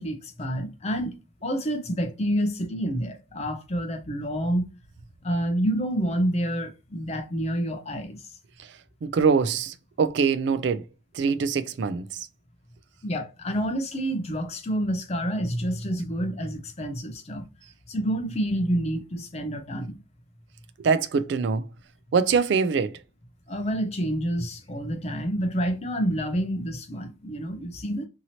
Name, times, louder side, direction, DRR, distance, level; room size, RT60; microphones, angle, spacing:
voice 1, 0.0-4.6 5.2-8.2 13.0-17.4 17.9-20.0 23.5-28.1, equal, 30° left, 0.5 m, -28 dB
voice 2, 9.0-10.8 11.1-12.3 20.8-21.7 22.1-22.9, right 5 dB, 60° right, 0.3 m, -23 dB
2.8 x 2.8 x 2.8 m
head